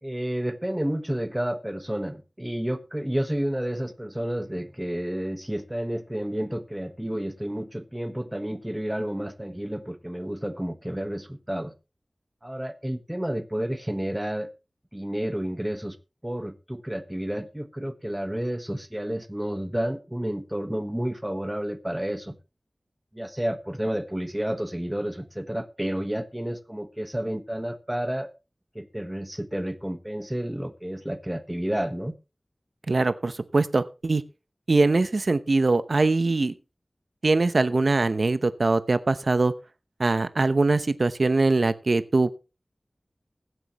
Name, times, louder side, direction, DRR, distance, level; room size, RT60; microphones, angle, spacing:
voice 1, 0.0-11.7 12.4-14.5 14.9-16.0 16.2-22.4 23.1-28.3 28.7-32.1, right 1 dB, 15° right, 1.3 m, -30 dB
voice 2, 32.9-34.2 34.7-36.5 37.2-39.5 40.0-42.4, right 3 dB, 70° right, 0.9 m, -22 dB
20.5 x 7.9 x 3.1 m
wide cardioid pair, 60°, 0 cm